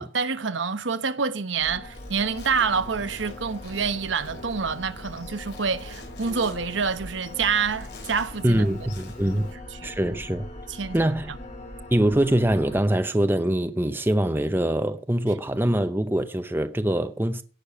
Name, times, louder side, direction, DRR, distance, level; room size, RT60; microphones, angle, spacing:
voice 1, 0.0-8.8 9.3-9.5 9.8-9.9 10.7-11.4, right 5 dB, 80° right, 1.1 m, -27 dB
sound 1, 1.6-12.8, left 1 dB, 40° left, 2.9 m, -41 dB
Insect, 1.9-9.5, left 3 dB, 65° left, 5.1 m, -48 dB
voice 2, 8.4-9.5 9.8-10.5 10.9-11.3 11.9-17.4, right 1 dB, 10° right, 0.7 m, -23 dB
17.0 x 6.7 x 5.6 m
head